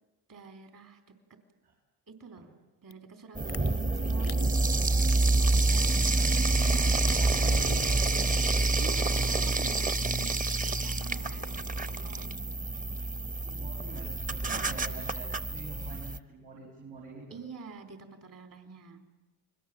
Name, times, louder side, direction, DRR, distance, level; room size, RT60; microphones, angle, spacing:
voice 1, 0.3-1.0 2.1-2.5 2.8-4.5 6.6-7.8 8.8-12.5 14.5-15.1 17.3-19.0, right 5 dB, 55° right, 6 dB, 3.9 m, -47 dB
sound 1, 2.9-3.0 3.5-3.7 4.2-4.4 5.0-5.2 5.7-5.9 6.5-6.7 7.0-7.4 7.8-8.1, left 14 dB, 75° left, 0.8 m, -44 dB
sound 2, 3.3-16.2, right 2 dB, 20° right, 0.9 m, -27 dB
voice 2, 5.6-6.8 7.2-8.0 13.4-17.4, right 3 dB, 85° right, -3 dB, 6.1 m, -46 dB
29.5 x 22.0 x 7.6 m, 1.1 s
supercardioid pair, 70°, 40 cm